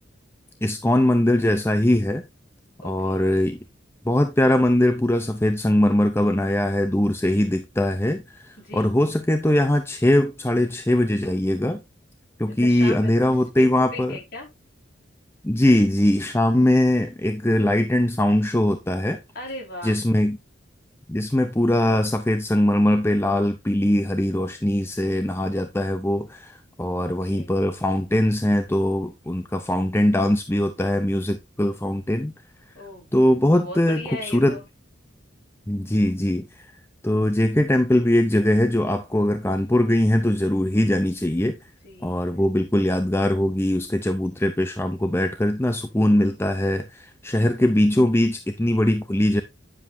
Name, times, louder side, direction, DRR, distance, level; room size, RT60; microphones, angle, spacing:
voice 1, 0.6-2.2 2.8-3.6 4.0-11.8 12.4-14.2 15.4-19.2 19.8-20.4 21.1-32.3 33.1-34.6 35.7-36.7 37.0-41.6 42.0-49.4, left 1 dB, 10° left, 0.6 m, -21 dB
voice 2, 2.8-3.3 8.6-8.9 12.6-13.1 13.6-14.5 19.3-20.0 27.0-27.5 32.7-33.2 33.5-34.6 41.8-42.2, left 2 dB, 55° left, 4.7 m, -38 dB
9.9 x 7.4 x 2.7 m
head